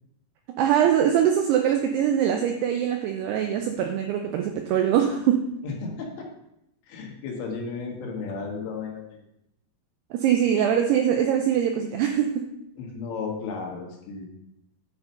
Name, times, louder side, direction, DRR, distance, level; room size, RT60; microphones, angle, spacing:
voice 1, 0.6-5.5 10.1-12.5, right 9 dB, 90° right, 5 dB, 2.3 m, -23 dB
voice 2, 5.6-6.3 6.9-9.2 12.8-14.3, left 4 dB, 75° left, 0 dB, 3.7 m, -34 dB
10.5 x 4.9 x 5.4 m, 0.83 s
omnidirectional pair, 5.4 m